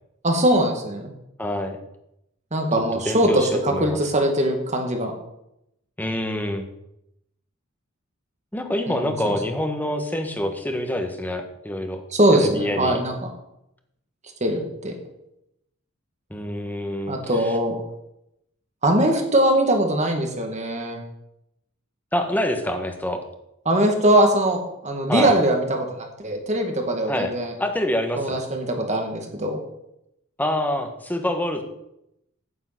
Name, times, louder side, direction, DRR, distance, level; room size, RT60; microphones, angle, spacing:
voice 1, 0.2-1.0 2.5-3.3 3.6-5.1 8.9-9.3 12.1-13.3 14.4-14.9 17.1-17.8 18.8-21.0 23.7-25.9 26.2-27.5 28.2-29.6, right 1 dB, 35° right, 3 dB, 2.3 m, -21 dB
voice 2, 1.4-1.8 3.0-4.0 6.0-6.6 8.5-12.0 12.3-13.0 16.3-17.6 22.1-23.2 25.1-25.3 27.1-27.3 27.6-28.4 30.4-31.6, left 1 dB, 10° left, 5 dB, 1.5 m, -26 dB
9.7 x 6.9 x 8.3 m, 0.83 s
head